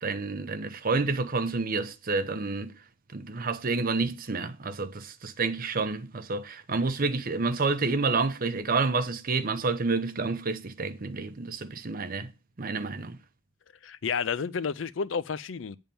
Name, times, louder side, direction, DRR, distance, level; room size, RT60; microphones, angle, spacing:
voice 1, 0.0-2.7 3.1-12.3 12.6-13.2, right 3 dB, 50° right, 0.8 m, -29 dB
voice 2, 13.8-15.8, left 6 dB, 85° left, 0.5 m, -31 dB
9.0 x 3.6 x 6.9 m
head